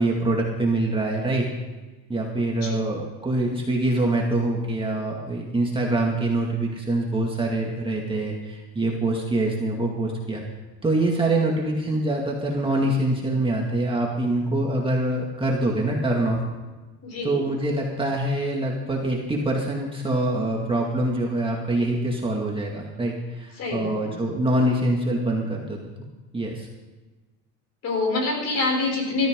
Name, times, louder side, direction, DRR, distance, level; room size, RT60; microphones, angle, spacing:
voice 1, 0.0-1.5 2.1-10.4 10.8-16.4 17.2-25.8 26.3-26.7, right 1 dB, 15° right, -2 dB, 2.2 m, -24 dB
voice 2, 17.0-17.4 23.6-24.1 27.8-29.3, left 3 dB, 45° left, 0 dB, 6.4 m, -26 dB
19.5 x 13.5 x 3.8 m, 1.2 s
cardioid pair, 135°, 36 cm